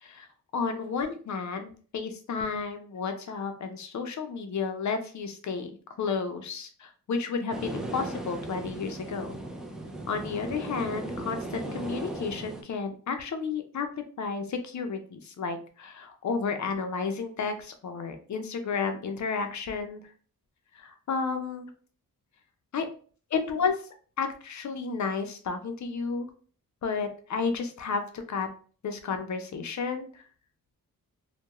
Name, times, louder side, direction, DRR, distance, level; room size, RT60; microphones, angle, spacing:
voice 1, 0.5-5.7 6.0-9.4 10.1-13.9 14.2-20.0 20.7-21.7 22.7-22.9 23.3-23.8 24.2-26.3 26.8-28.5 28.8-30.2, left 5 dB, 55° left, 7 dB, 0.6 m, -32 dB
sound 1, 7.5-12.6, right 1 dB, ahead, 0.4 m, -37 dB
2.3 x 2.2 x 2.9 m, 0.42 s
cardioid pair, 70°, 35 cm